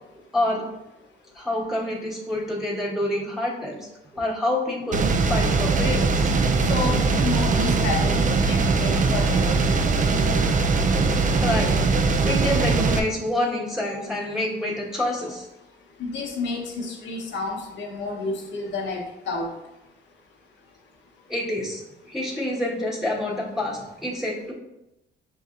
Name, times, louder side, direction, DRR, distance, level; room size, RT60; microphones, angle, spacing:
voice 1, 0.3-0.6 1.3-6.3 11.4-11.7 12.2-15.5 21.3-24.5, left 1 dB, ahead, -5 dB, 1.4 m, -27 dB
sound 1, 4.9-13.0, right 4 dB, 40° right, 0.5 m, -21 dB
voice 2, 6.7-9.5 16.0-19.5, left 3 dB, 65° left, -1 dB, 1.0 m, -30 dB
6.6 x 2.7 x 2.5 m, 0.93 s
cardioid pair, 90°, 20 cm